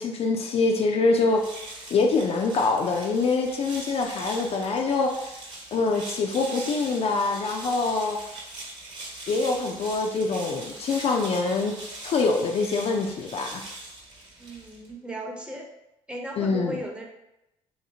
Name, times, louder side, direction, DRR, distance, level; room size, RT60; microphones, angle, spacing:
voice 1, 0.0-1.4 1.9-5.4 5.7-8.2 9.3-11.7 12.0-13.6 16.4-16.8, left 3 dB, 45° left, 2 dB, 0.4 m, -25 dB
sound 1, 1.3-14.9, right 2 dB, 30° right, 1.1 m, -41 dB
voice 2, 14.4-15.7 16.1-17.1, right 1 dB, 5° right, 0 dB, 0.7 m, -36 dB
3.2 x 2.8 x 2.7 m, 0.89 s
supercardioid pair, 65°, 14 cm